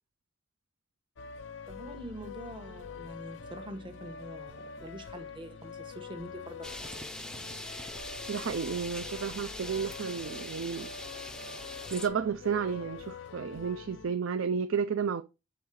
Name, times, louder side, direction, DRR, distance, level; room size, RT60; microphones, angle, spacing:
sound 1, 1.2-14.1, left 5 dB, 65° left, 0.5 m, -45 dB
voice 1, 1.7-7.3, right 1 dB, 25° right, 0.9 m, -45 dB
sound 2, 6.6-12.1, left 1 dB, 5° left, 0.4 m, -42 dB
voice 2, 8.3-10.9 11.9-15.2, right 6 dB, 75° right, 0.5 m, -32 dB
7.1 x 3.8 x 4.7 m
head